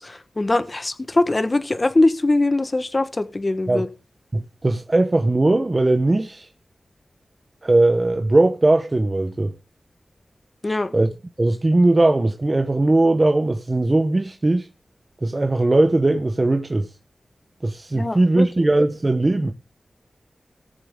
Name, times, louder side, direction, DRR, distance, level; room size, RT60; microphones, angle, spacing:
voice 1, 0.0-3.9 10.6-10.9 17.9-18.5, left 2 dB, 30° left, 1.2 m, -21 dB
voice 2, 4.3-6.5 7.6-9.5 10.9-11.1 11.4-14.7 15.2-16.9 17.6-19.5, right 2 dB, 30° right, 0.8 m, -19 dB
19.0 x 7.0 x 3.6 m
wide cardioid pair, 100°, 0 cm